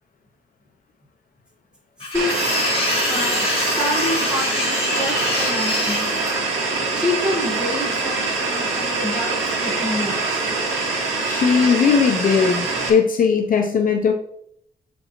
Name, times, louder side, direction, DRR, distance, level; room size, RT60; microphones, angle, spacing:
sound 1, 2.0-6.3, left 3 dB, 30° left, 1.6 m, -25 dB
voice 1, 2.0-2.4 3.1-6.4 6.9-10.5, left 1 dB, 5° right, -4 dB, 1.5 m, -28 dB
sound 2, 2.1-12.9, right 3 dB, 90° right, 1.9 m, -24 dB
voice 2, 11.2-14.1, left 6 dB, 45° left, 2 dB, 0.6 m, -18 dB
7.5 x 5.2 x 3.0 m, 0.70 s
wide cardioid pair, 175°, 19 cm